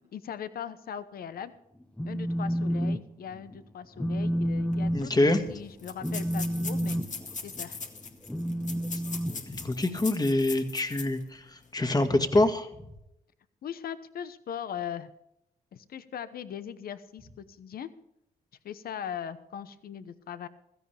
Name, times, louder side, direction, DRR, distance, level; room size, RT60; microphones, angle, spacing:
voice 1, 0.1-1.5 2.0-7.0 7.4-7.8 13.6-15.1 15.7-17.9 18.6-20.5, left 8 dB, 70° left, 13 dB, 1.0 m, -39 dB
Telephone, 1.8-3.0 3.3-3.6 4.0-10.1, equal, 5° left, 1.1 m, -31 dB
sound 1, 4.7-4.8 5.0-5.1 5.8-11.2 11.6-11.7 12.2-12.4, left 5 dB, 50° left, 2.1 m, -40 dB
voice 2, 4.9-5.4 9.5-12.7, left 1 dB, 25° left, 7 dB, 2.0 m, -25 dB
16.0 x 14.0 x 3.4 m, 0.82 s
cardioid pair, 60°, 16 cm